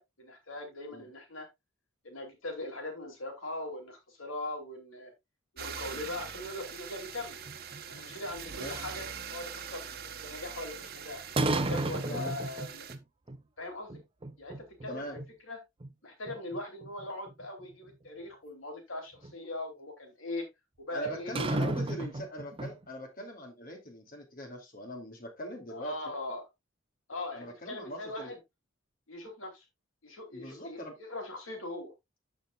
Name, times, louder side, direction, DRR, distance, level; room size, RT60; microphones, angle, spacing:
voice 1, 0.0-1.5 2.0-5.1 5.5-7.4 7.9-9.8 10.2-12.8 13.6-14.0 14.4-15.1 15.5-15.6 16.0-20.5 20.8-21.3 25.7-26.5 27.1-28.4 29.1-29.6 30.0-31.9, left 2 dB, 80° left, 2.7 m, -40 dB
sound 1, 5.6-13.0, right 7 dB, 50° right, 1.0 m, -43 dB
sound 2, 7.5-8.8 11.4-13.0 13.3-13.4 13.9-14.9 15.2-15.3 15.8-15.9 16.3-17.6 19.2-19.3 21.0-22.8, right 2 dB, 25° right, 0.7 m, -33 dB
voice 2, 14.9-15.2 20.9-26.1 27.3-28.3 30.3-31.0, equal, 45° left, 2.5 m, -41 dB
13.5 x 4.6 x 2.3 m
head